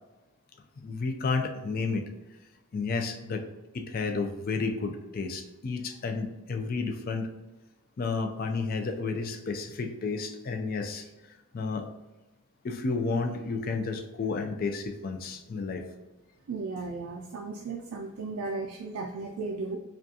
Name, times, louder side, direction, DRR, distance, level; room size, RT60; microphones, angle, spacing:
voice 1, 0.8-2.0 2.7-3.4 3.7-7.3 8.0-11.1 11.5-11.9 12.6-15.8, left 4 dB, 40° left, 5 dB, 0.3 m, -31 dB
voice 2, 16.5-19.8, right 3 dB, 75° right, 2 dB, 0.3 m, -35 dB
4.8 x 2.3 x 2.7 m, 1.1 s
head